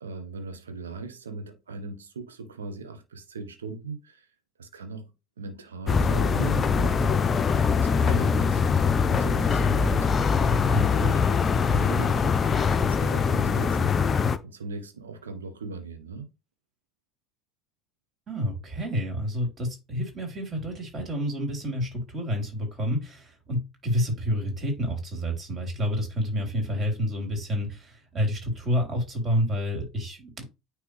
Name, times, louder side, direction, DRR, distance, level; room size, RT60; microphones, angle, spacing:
voice 1, 0.0-4.3 4.6-10.1 10.6-12.3 12.7-14.1 14.4-16.3, right 3 dB, 75° right, 1.1 m, -39 dB
sound 1, 5.9-14.4, left 5 dB, 30° left, 0.6 m, -23 dB
voice 2, 10.7-11.1 18.3-30.4, equal, 30° right, 4.0 m, -29 dB
9.3 x 3.3 x 3.3 m
figure-of-eight pair, 70°, 0 cm